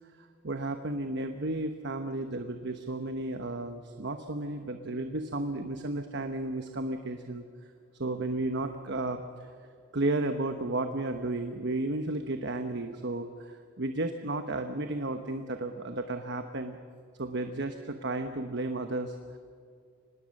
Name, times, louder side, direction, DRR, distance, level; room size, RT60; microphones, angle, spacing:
voice 1, 0.2-7.4 8.0-9.5 9.9-16.8 17.2-19.1, right 2 dB, 60° right, 6 dB, 1.1 m, -33 dB
25.0 x 20.0 x 6.5 m, 2.2 s
head